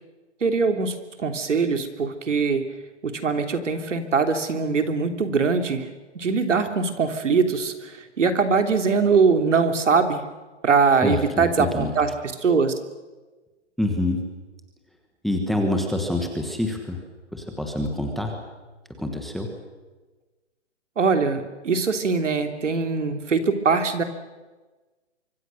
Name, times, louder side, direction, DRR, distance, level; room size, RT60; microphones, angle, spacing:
voice 1, 0.4-0.9 1.2-2.6 3.0-5.8 6.1-7.7 8.2-10.2 10.6-12.1 12.4-12.7 21.0-24.0, right 5 dB, 90° right, 7 dB, 3.2 m, -22 dB
voice 2, 11.0-11.9 13.8-14.2 15.2-17.0 17.3-18.3 19.0-19.5, left 1 dB, ahead, 3 dB, 1.1 m, -26 dB
25.5 x 24.5 x 6.4 m, 1.3 s
hypercardioid pair, 170°, 36 cm